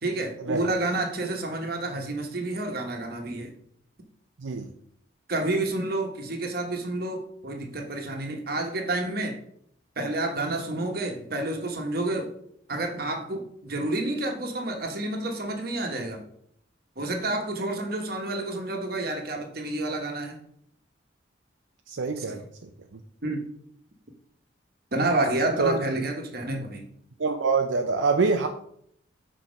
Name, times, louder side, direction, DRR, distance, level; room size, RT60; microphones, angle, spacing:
voice 1, 0.0-3.5 5.3-9.4 10.0-12.3 12.7-16.2 17.0-20.4 22.2-22.5 23.2-23.5 24.9-26.9, right 2 dB, 50° right, 3 dB, 1.2 m, -29 dB
voice 2, 4.4-4.7 21.9-22.4 25.6-25.8 27.2-28.5, right 4 dB, 80° right, 5 dB, 0.5 m, -25 dB
6.2 x 4.4 x 5.2 m, 0.69 s
head